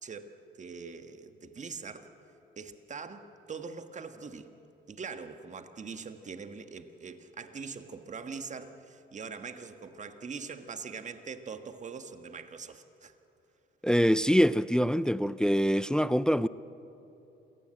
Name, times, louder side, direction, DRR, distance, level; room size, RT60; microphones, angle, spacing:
voice 1, 0.0-2.1 2.6-4.5 4.9-13.1, right 5 dB, 35° right, 1.5 m, -42 dB
voice 2, 13.8-16.5, equal, 5° left, 0.4 m, -24 dB
27.5 x 17.5 x 7.9 m
cardioid pair, 90°, 20 cm